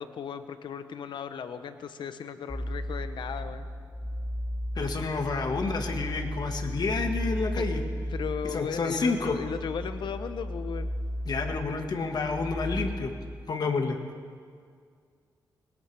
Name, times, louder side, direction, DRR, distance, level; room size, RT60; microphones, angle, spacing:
voice 1, 0.0-3.7 8.1-10.9, left 7 dB, 80° left, 10 dB, 0.8 m, -36 dB
sound 1, 2.5-13.4, equal, 10° left, 1.0 m, -35 dB
voice 2, 4.7-7.8 8.4-9.4 11.2-13.1 13.5-14.0, left 4 dB, 60° left, 4 dB, 1.6 m, -29 dB
21.5 x 18.0 x 3.4 m, 2.1 s
cardioid pair, 75°, 8 cm